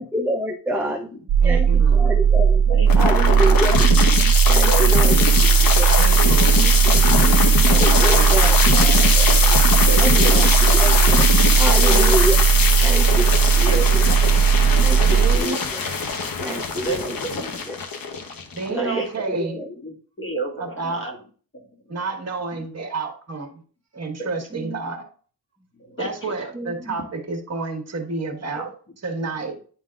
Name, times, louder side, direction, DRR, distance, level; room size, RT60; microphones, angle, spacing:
voice 1, 0.0-1.1 1.4-2.6 3.0-3.9 4.2-5.2 5.5-5.9 6.5-7.3 7.7-8.6 8.8-9.6 10.0-12.4 12.8-14.0 14.8-15.8 16.4-17.1 18.7-19.0 19.4-19.7 24.5-24.8 26.5-26.9, right 1 dB, 5° right, 1 dB, 0.6 m, -28 dB
sound 1, 1.3-15.4, right 7 dB, 55° right, 0.5 m, -16 dB
voice 2, 1.4-2.2 3.2-3.3 6.0-6.6 8.1-8.5 11.9-12.1 15.0-15.6 18.5-19.6 20.6-21.1 21.9-23.5 23.9-25.1 26.0-28.7 29.0-29.5, right 3 dB, 40° right, 3 dB, 1.5 m, -30 dB
voice 3, 2.7-3.4 4.7-5.0 5.8-6.7 7.9-8.4 8.7-8.9 9.9-10.6 11.8-12.1 13.6-14.3 14.9-15.3 16.7-17.6 18.7-21.2 21.9-22.4 22.8-22.9 24.2-24.3 25.8-26.5 28.5-28.7, right 2 dB, 30° left, 1 dB, 2.0 m, -32 dB
sound 2, 2.9-18.9, left 5 dB, 55° left, 1.0 m, -21 dB
10.5 x 3.9 x 2.5 m, 0.41 s
cardioid pair, 95°, 41 cm